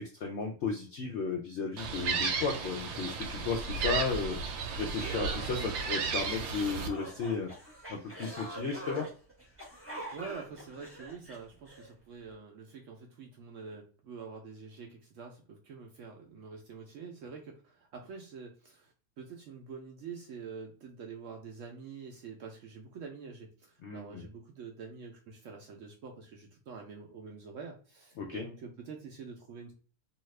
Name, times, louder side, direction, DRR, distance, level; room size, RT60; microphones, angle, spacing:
voice 1, 0.0-9.1 23.8-24.2 28.2-28.5, left 5 dB, 75° left, 2 dB, 0.6 m, -35 dB
Gull seagull, 1.8-6.9, right 5 dB, 85° right, 1.2 m, -34 dB
sound 1, 4.8-11.9, right 1 dB, 15° right, 0.5 m, -45 dB
voice 2, 10.1-29.7, right 5 dB, 70° right, 1 dB, 0.8 m, -46 dB
2.7 x 2.4 x 3.1 m, 0.40 s
omnidirectional pair, 1.7 m